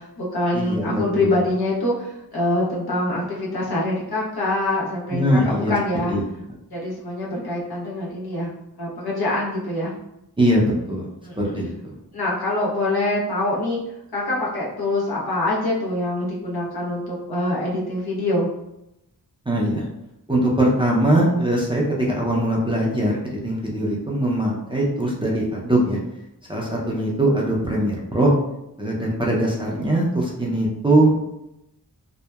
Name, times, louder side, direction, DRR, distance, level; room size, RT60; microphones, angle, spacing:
voice 1, 0.0-6.2 6.7-8.5 8.8-9.9 11.2-11.5 12.1-13.8 14.1-18.5, left 1 dB, 70° left, -4 dB, 0.8 m, -24 dB
voice 2, 0.5-1.4 5.1-5.8 6.1-6.2 10.4-11.0 11.4-11.7 19.5-19.9 20.3-26.0 26.5-28.3 28.8-31.2, right 1 dB, 15° right, -4 dB, 0.4 m, -21 dB
2.8 x 2.0 x 2.2 m, 0.86 s
wide cardioid pair, 105°, 38 cm